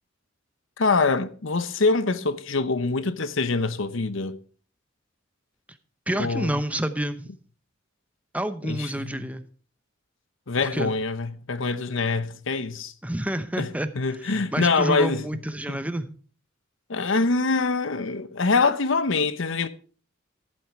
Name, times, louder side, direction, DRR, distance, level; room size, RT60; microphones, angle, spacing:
voice 1, 0.8-4.4 6.2-6.6 8.6-9.1 10.5-12.9 13.6-13.7 13.9-15.2 15.7-15.8 16.9-19.7, left 3 dB, 65° left, 0.9 m, -24 dB
voice 2, 6.1-7.3 8.3-9.4 10.6-10.9 13.0-16.1, right 1 dB, 5° right, 0.8 m, -29 dB
14.0 x 7.6 x 4.7 m
head